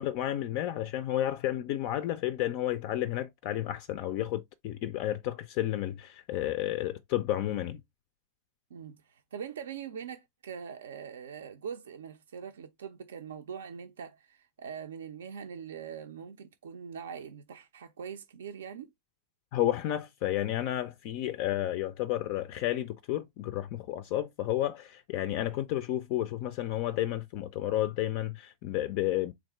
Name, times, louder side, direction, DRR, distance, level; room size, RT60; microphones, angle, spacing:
voice 1, 0.0-7.8 19.5-29.3, left 13 dB, 45° left, 0.3 m, -31 dB
voice 2, 8.7-18.9, right 7 dB, 65° right, 0.4 m, -42 dB
3.4 x 2.5 x 4.4 m
figure-of-eight pair, 90°, 0 cm